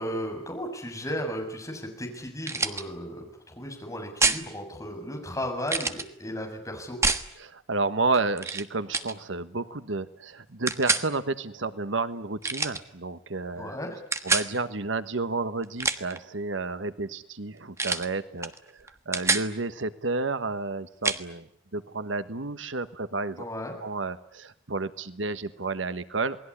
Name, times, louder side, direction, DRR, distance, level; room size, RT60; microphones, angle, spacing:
voice 1, 0.0-7.0 13.6-14.0 23.4-23.7, equal, 15° left, 2 dB, 7.2 m, -35 dB
sound 1, 2.5-2.8 4.2-4.4 5.7-6.1 7.0-7.3 8.4-8.6 8.9-9.1 10.7-11.1 12.4-12.8 14.1-14.5 15.6-16.2 17.8-18.1 18.4-18.6 18.9-19.5 21.0-21.2, right 3 dB, 15° right, 1.3 m, -26 dB
voice 2, 7.4-13.8 14.2-18.5 19.1-21.5 21.7-23.4 23.8-26.4, right 3 dB, 80° right, 12 dB, 1.3 m, -31 dB
28.0 x 20.0 x 10.0 m, 0.72 s
head